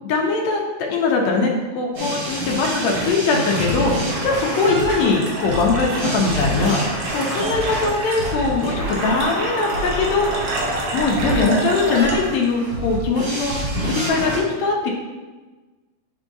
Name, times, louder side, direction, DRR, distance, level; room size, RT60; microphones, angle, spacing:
voice 1, 0.0-10.5 10.9-14.9, left 3 dB, 80° left, 0 dB, 1.6 m, -21 dB
sound 1, 1.9-14.4, equal, 45° right, 2.8 m, -27 dB
sound 2, 2.0-13.7, right 2 dB, 75° right, 2.5 m, -31 dB
8.2 x 4.5 x 2.7 m, 1.3 s
omnidirectional pair, 3.9 m